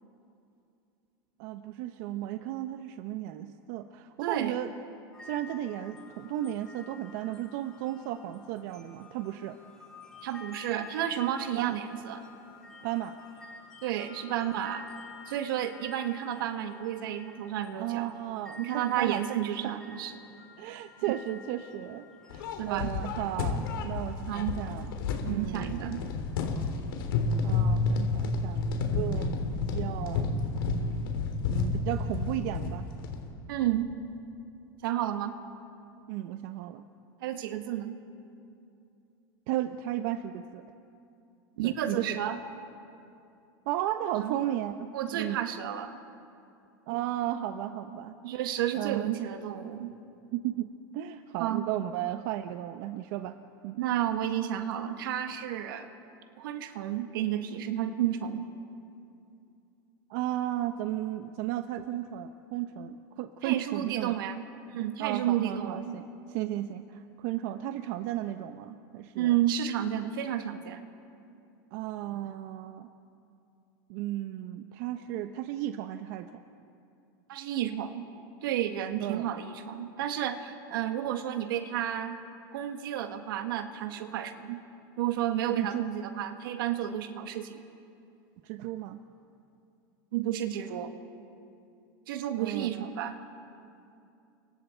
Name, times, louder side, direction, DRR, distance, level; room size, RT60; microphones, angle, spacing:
voice 1, 1.4-4.7 5.2-9.6 11.5-11.8 12.8-13.2 17.7-19.2 19.5-19.6 20.6-24.9 25.2-26.1 27.4-30.4 31.5-32.9 36.1-36.9 39.5-40.7 41.6-42.2 43.7-45.4 46.9-48.2 48.7-49.1 50.3-53.4 53.6-53.8 60.1-64.2 65.0-69.4 71.7-72.9 73.9-76.4 79.0-79.3 85.6-85.8 88.4-89.0 92.4-92.9, right 13 dB, 65° right, 8 dB, 0.9 m, -34 dB
voice 2, 4.2-4.5 10.2-12.2 13.8-14.9 15.3-18.1 18.6-20.1 22.6-22.9 24.3-24.5 25.3-26.0 33.5-33.9 34.8-35.4 37.2-38.0 41.6-42.4 44.2-44.3 44.9-46.0 48.2-50.0 51.4-51.7 53.8-55.9 56.4-58.4 63.4-66.0 69.2-70.8 77.3-78.1 78.4-82.2 82.5-84.6 85.0-87.6 90.1-90.9 92.1-93.2, right 11 dB, 85° right, 7 dB, 1.8 m, -31 dB
sound 1, 5.1-24.2, left 4 dB, 5° left, 6.5 m, -51 dB
sound 2, 22.3-33.3, left 4 dB, 90° left, 3.5 m, -30 dB
29.5 x 24.0 x 4.5 m, 2.6 s
supercardioid pair, 125°, 11 cm